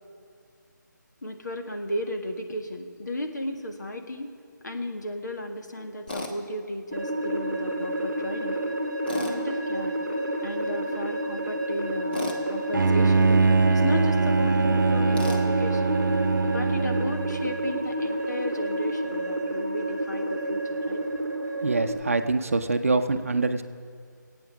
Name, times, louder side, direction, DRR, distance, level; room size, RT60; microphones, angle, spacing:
voice 1, 1.2-4.3 4.6-8.6 9.1-10.0 10.4-16.0 16.4-21.0, left 1 dB, 65° left, 4 dB, 1.7 m, -34 dB
Tools, 6.1-6.3 9.1-9.4 12.1-12.4 15.1-15.5, left 2 dB, 30° left, 1.3 m, -32 dB
sound 1, 6.9-21.9, right 1 dB, 10° left, 1.0 m, -30 dB
Bowed string instrument, 12.7-17.7, right 4 dB, 80° right, 0.6 m, -22 dB
voice 2, 21.6-23.6, right 3 dB, 45° right, 8 dB, 0.7 m, -25 dB
19.0 x 9.0 x 6.1 m, 2.1 s
figure-of-eight pair, 175°, 10 cm